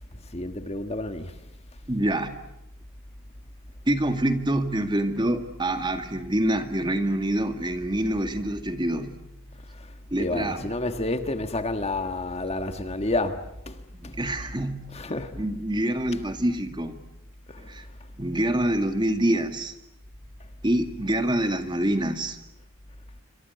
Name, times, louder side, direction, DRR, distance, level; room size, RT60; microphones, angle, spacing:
voice 1, 0.1-1.4 9.7-13.8 14.0-14.2 14.9-15.3 17.5-17.9, left 2 dB, 30° left, 1.5 m, -30 dB
voice 2, 1.9-2.3 3.9-9.2 10.1-10.7 13.9-14.8 15.3-17.0 17.6-17.8 18.2-19.7 20.6-22.4, right 1 dB, 20° right, 2.0 m, -26 dB
28.0 x 26.0 x 8.2 m
head